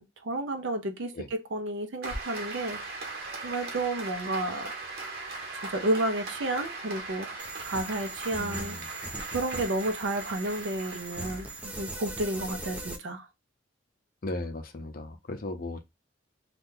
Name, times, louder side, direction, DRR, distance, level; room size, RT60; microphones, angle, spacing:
voice 1, 0.0-2.8 3.4-4.7 5.7-7.3 7.6-8.8 9.3-13.3, right 2 dB, 70° right, 0.6 m, -31 dB
Applause, 2.0-12.1, right 3 dB, 50° right, 1.1 m, -39 dB
sound 1, 7.4-13.0, right 2 dB, 5° right, 0.4 m, -40 dB
voice 2, 8.4-8.9 14.2-15.8, left 2 dB, 45° left, 0.6 m, -36 dB
2.7 x 2.3 x 3.6 m
head